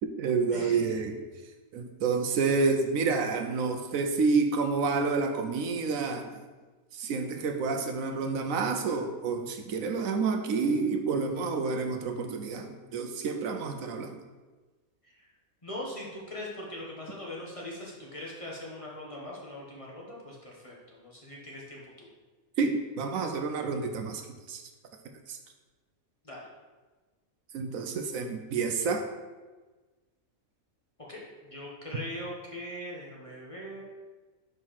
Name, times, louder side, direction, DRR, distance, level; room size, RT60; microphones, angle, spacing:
voice 1, 0.0-1.2 1.7-6.3 6.9-14.1 22.6-24.2 24.5-24.6 25.3-25.4 27.5-29.1, right 4 dB, 70° right, 5 dB, 1.0 m, -29 dB
voice 2, 0.5-0.9 15.1-15.2 15.6-22.1 26.2-26.4 31.1-33.8, left 1 dB, 25° left, -4 dB, 1.2 m, -41 dB
5.3 x 4.6 x 5.6 m, 1.3 s
omnidirectional pair, 1.5 m